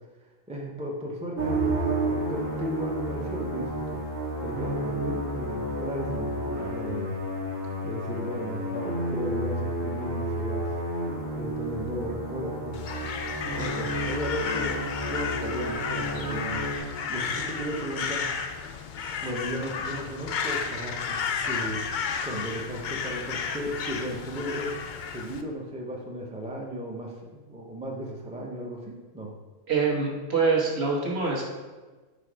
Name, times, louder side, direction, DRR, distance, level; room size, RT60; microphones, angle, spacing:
voice 1, 0.5-4.0 4.4-7.2 7.8-10.8 11.3-12.9 13.6-14.8 15.1-18.3 19.2-24.8 25.1-29.3, equal, 10° right, -1 dB, 0.4 m, -35 dB
sound 1, 1.4-16.8, right 1 dB, 80° right, 1.7 m, -31 dB
Crow, 12.7-25.4, left 6 dB, 80° left, 0.4 m, -33 dB
voice 2, 29.7-31.5, right 4 dB, 55° right, -3 dB, 1.4 m, -25 dB
5.0 x 4.0 x 5.0 m, 1.3 s
omnidirectional pair, 1.4 m